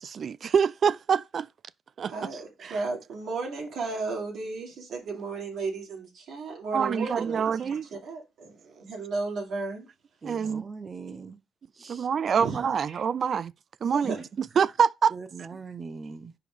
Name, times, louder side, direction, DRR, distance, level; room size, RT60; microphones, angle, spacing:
voice 1, 0.0-1.5 2.0-2.8 6.7-7.9 10.2-10.6 11.9-13.5 13.8-15.1, right 7 dB, 50° right, 0.3 m, -26 dB
voice 2, 2.1-9.9 11.8-12.0 12.4-12.6 12.9-13.0 13.9-14.2, right 3 dB, 75° right, 2.7 m, -34 dB
voice 3, 10.2-11.4 11.7-12.1 14.0-14.3 15.1-16.3, right 4 dB, 35° right, 0.8 m, -41 dB
5.0 x 4.9 x 4.9 m
cardioid pair, 90°, 0 cm